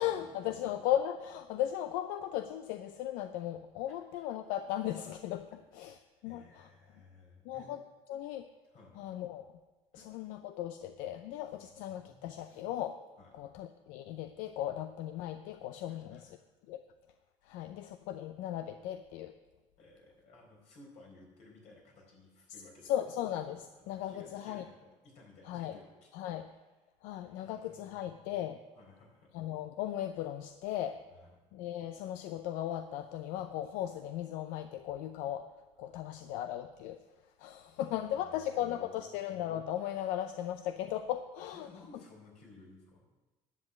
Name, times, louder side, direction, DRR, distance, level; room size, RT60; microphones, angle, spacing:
voice 1, 0.0-6.0 6.2-6.7 7.4-7.8 8.1-8.5 8.9-9.6 9.9-13.1 13.3-16.4 16.7-16.9 17.4-19.4 22.8-24.7 25.4-25.8 26.1-26.5 27.0-28.6 29.3-31.1 31.5-41.7, left 11 dB, 90° left, 9 dB, 0.6 m, -37 dB
voice 2, 5.8-7.7 8.7-9.0 9.9-10.3 11.9-12.7 13.2-13.3 15.9-16.2 19.8-23.1 23.8-26.1 27.2-28.4 28.7-29.3 31.2-31.3 35.9-36.3 37.6-39.1 41.5-43.0, left 3 dB, 65° left, -1 dB, 4.6 m, -58 dB
11.0 x 7.6 x 7.7 m, 1.2 s
cardioid pair, 120°, 13 cm